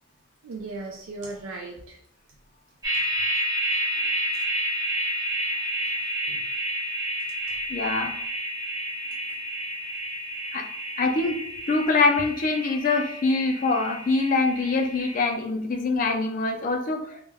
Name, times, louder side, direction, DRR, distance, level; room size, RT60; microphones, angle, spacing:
voice 1, 0.4-2.0 2.9-3.0 6.2-6.4 7.5-7.6 17.1-17.2, right 3 dB, 75° right, 0 dB, 0.4 m, -37 dB
sound 1, 2.8-15.3, equal, 15° right, 0.6 m, -30 dB
voice 2, 7.7-8.1 10.5-10.6 11.0-11.4 11.7-17.0, left 3 dB, 40° left, 3 dB, 0.3 m, -24 dB
2.2 x 2.1 x 3.3 m, 0.68 s
head